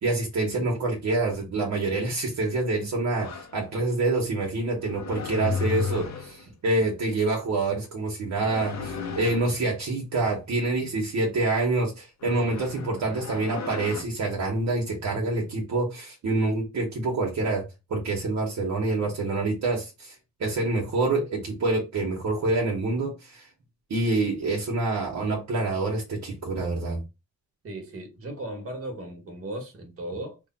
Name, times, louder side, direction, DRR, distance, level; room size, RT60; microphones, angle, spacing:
voice 1, 0.0-17.6 17.9-20.1 20.4-23.5 23.9-27.0, right 2 dB, 65° right, 1.1 m, -26 dB
sound 1, 3.2-3.5 4.8-6.5 8.3-9.6 12.2-14.0, left 5 dB, 60° left, 0.7 m, -34 dB
voice 2, 27.6-30.4, right 1 dB, 45° right, 1.3 m, -36 dB
3.2 x 2.2 x 4.0 m
wide cardioid pair, 125°, 31 cm